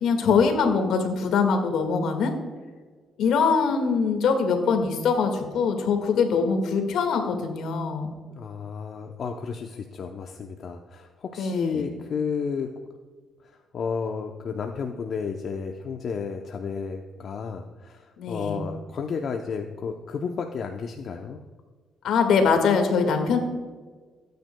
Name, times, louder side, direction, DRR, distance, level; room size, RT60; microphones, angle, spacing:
voice 1, 0.0-2.3 3.2-8.1 11.4-11.9 18.2-18.6 22.0-23.4, left 5 dB, 80° left, 5 dB, 1.8 m, -23 dB
voice 2, 8.4-12.7 13.4-21.4, left 5 dB, 60° left, 3 dB, 0.7 m, -32 dB
18.0 x 9.4 x 2.3 m, 1.4 s
cardioid pair, 90°, 0 cm